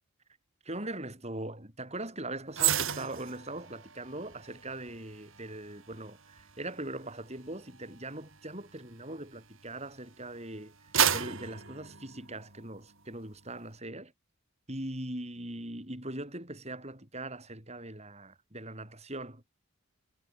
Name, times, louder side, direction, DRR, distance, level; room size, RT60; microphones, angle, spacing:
voice 1, 0.6-10.7 11.1-14.1 14.7-19.4, right 1 dB, 30° right, 7.5 m, -41 dB
sound 1, 2.5-9.9 10.4-12.8 13.1-13.3, right 9 dB, 60° right, 4.6 m, -34 dB
head